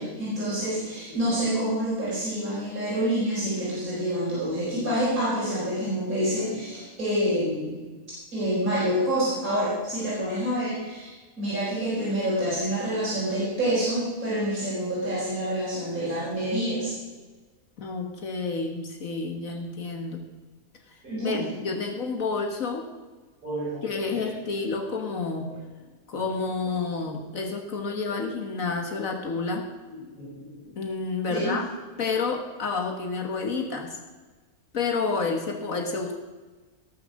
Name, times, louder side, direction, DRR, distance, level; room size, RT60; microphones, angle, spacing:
voice 1, 0.0-7.8 8.3-16.9 21.0-21.4 23.4-23.9 24.1-24.3 28.1-28.3 29.9-30.7 31.3-31.6, equal, 70° right, -9 dB, 5.4 m, -27 dB
voice 2, 17.8-20.2 21.2-22.9 23.8-25.5 26.1-29.6 30.8-31.7 32.0-34.0 34.7-36.1, left 4 dB, 65° left, 3 dB, 1.7 m, -29 dB
18.5 x 7.2 x 6.4 m, 1.3 s
omnidirectional pair, 1.5 m